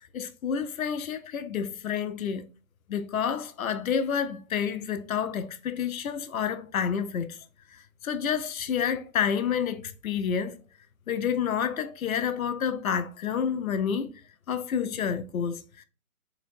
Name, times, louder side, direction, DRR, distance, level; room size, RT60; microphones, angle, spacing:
voice 1, 0.1-2.5 2.9-7.4 8.0-10.6 11.1-14.1 14.5-15.8, left 7 dB, 75° left, 0.7 m, -29 dB
4.1 x 2.8 x 2.6 m
hypercardioid pair, 150°, 42 cm